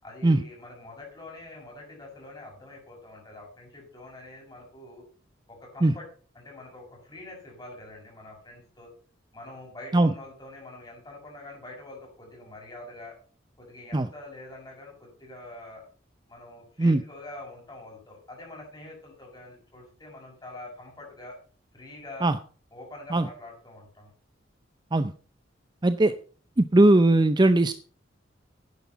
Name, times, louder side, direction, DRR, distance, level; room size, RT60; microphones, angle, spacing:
voice 1, 0.0-5.0 5.5-6.1 6.3-8.9 9.3-13.2 13.6-15.8 16.3-21.4 21.7-22.3 22.7-24.1, left 2 dB, 20° left, -1 dB, 6.7 m, -45 dB
voice 2, 25.8-26.1 26.6-27.7, right 2 dB, 25° right, 11 dB, 0.5 m, -19 dB
10.5 x 9.5 x 5.8 m, 0.40 s
head